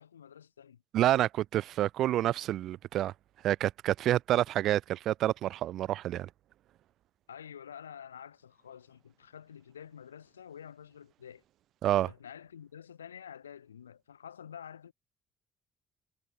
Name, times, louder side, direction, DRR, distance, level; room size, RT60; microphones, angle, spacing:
voice 1, 0.0-0.8 7.3-11.4 12.0-14.9, left 8 dB, 90° left, 4.0 m, -48 dB
voice 2, 0.9-3.1 3.4-6.3 11.8-12.1, right 13 dB, 65° right, 0.4 m, -28 dB
hypercardioid pair, 50°, 0 cm